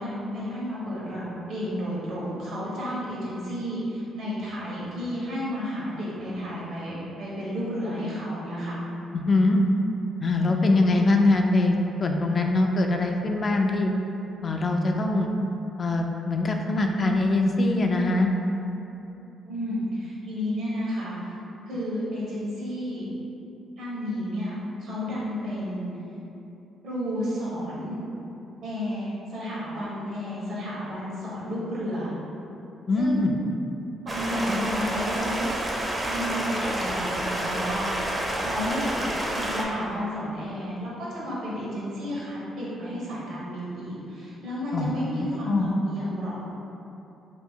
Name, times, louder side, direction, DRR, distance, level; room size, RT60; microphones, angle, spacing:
voice 1, 0.0-8.8 19.4-21.1 21.7-23.1 23.8-25.9 26.8-28.0 28.6-32.1 33.0-33.2 34.0-35.5 36.0-39.0 39.3-46.4, equal, 75° right, -7 dB, 1.2 m, -32 dB
voice 2, 9.1-9.6 10.2-13.9 14.4-15.3 15.8-18.3 32.9-33.3 44.7-44.9 45.5-45.7, left 2 dB, 40° left, 3 dB, 0.3 m, -22 dB
Stream, 34.1-39.6, right 1 dB, 20° right, 0.5 m, -29 dB
3.0 x 2.7 x 3.6 m, 2.9 s
cardioid pair, 90°, 0 cm